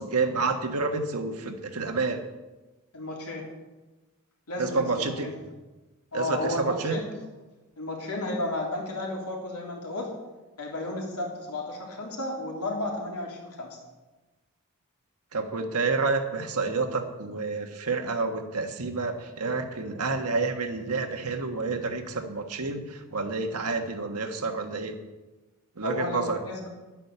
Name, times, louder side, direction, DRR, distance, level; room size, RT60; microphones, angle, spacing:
voice 1, 0.0-2.2 4.6-5.3 6.1-7.0 15.3-25.0 25.8-26.4, right 4 dB, 80° right, 5 dB, 1.5 m, -29 dB
voice 2, 2.9-3.5 4.5-5.3 6.1-7.1 7.8-10.1 10.6-13.8 25.8-26.7, left 2 dB, 90° left, -1 dB, 3.4 m, -33 dB
10.5 x 9.2 x 6.8 m, 1.1 s
head